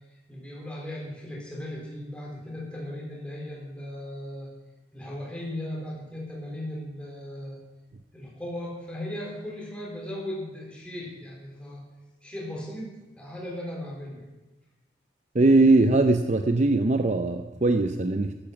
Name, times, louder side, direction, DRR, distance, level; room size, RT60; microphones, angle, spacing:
voice 1, 0.3-4.5 4.9-7.6 8.1-11.8 12.2-14.3 15.4-15.5, left 1 dB, 5° left, -3 dB, 4.0 m, -37 dB
voice 2, 15.3-18.4, right 2 dB, 40° right, 7 dB, 0.6 m, -21 dB
12.5 x 12.0 x 5.9 m, 1.1 s
head